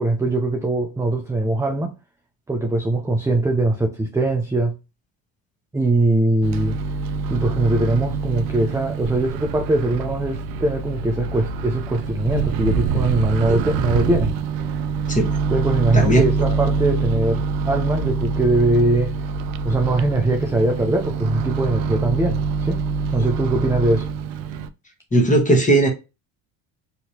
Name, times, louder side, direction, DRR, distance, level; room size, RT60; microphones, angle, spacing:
voice 1, 0.0-1.9 2.5-4.7 5.7-6.8 7.3-14.3 15.5-19.1 19.6-22.8 23.1-24.1, right 2 dB, 5° right, 0.5 m, -21 dB
Microwave oven, 6.4-24.7, right 5 dB, 65° right, 0.6 m, -25 dB
voice 2, 25.1-25.9, right 1 dB, 15° left, 1.3 m, -17 dB
3.0 x 2.8 x 2.8 m
hypercardioid pair, 75°, 49 cm